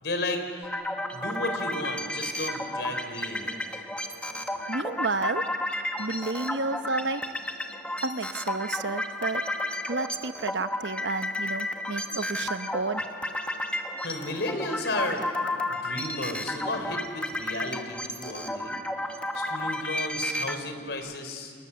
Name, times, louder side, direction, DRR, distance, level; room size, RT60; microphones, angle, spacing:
voice 1, 0.0-0.4 1.1-3.8 14.0-15.3 15.7-18.8 19.3-21.5, left 2 dB, 75° left, 6 dB, 3.8 m, -33 dB
sound 1, 0.6-20.6, left 1 dB, 5° left, 1.2 m, -32 dB
sound 2, 0.9-20.9, equal, 40° right, 6.1 m, -53 dB
voice 2, 4.7-5.4 6.0-7.2 8.0-9.4 9.9-13.1, right 3 dB, 80° right, 11 dB, 0.9 m, -31 dB
30.0 x 28.5 x 7.0 m, 2.1 s
head